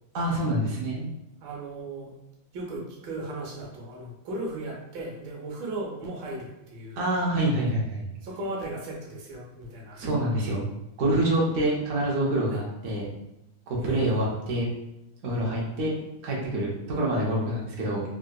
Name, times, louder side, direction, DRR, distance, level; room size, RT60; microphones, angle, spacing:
voice 1, 0.1-1.1 7.0-8.0 9.9-10.6 11.0-13.1 13.7-14.7 15.2-15.9 16.2-18.0, right 1 dB, 55° right, -4 dB, 0.9 m, -26 dB
voice 2, 1.4-2.1 2.5-7.0 8.2-10.0 12.5-12.6 13.8-14.2, right 2 dB, 85° right, -1 dB, 1.6 m, -36 dB
3.7 x 2.7 x 2.2 m, 0.89 s
omnidirectional pair, 2.1 m